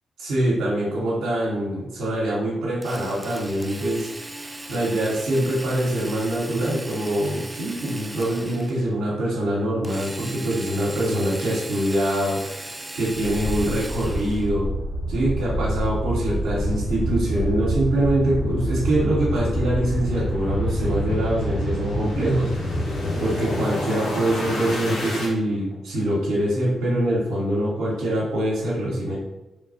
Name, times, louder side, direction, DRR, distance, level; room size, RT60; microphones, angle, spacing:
voice 1, 0.2-4.1 4.7-12.7 12.9-14.7 15.1-22.7 23.2-29.1, right 1 dB, 80° right, -8 dB, 1.0 m, -24 dB
Drill, 2.8-8.9 9.8-14.5, right 1 dB, 20° right, 0.4 m, -38 dB
sound 1, 13.2-25.3, equal, 70° left, 0.9 m, -27 dB
3.3 x 2.2 x 4.1 m, 1.0 s
hypercardioid pair, 45°, 0 cm